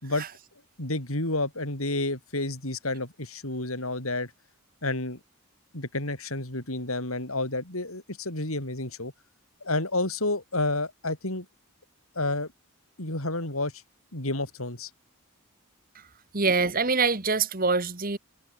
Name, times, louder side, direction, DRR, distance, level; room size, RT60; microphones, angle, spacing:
voice 1, 0.8-4.3 4.8-5.2 5.7-9.1 9.6-11.5 12.2-12.5 13.0-13.7 14.1-14.9, left 2 dB, 80° left, 7.2 m, -30 dB
voice 2, 16.3-18.2, right 4 dB, 40° right, 1.8 m, -24 dB
head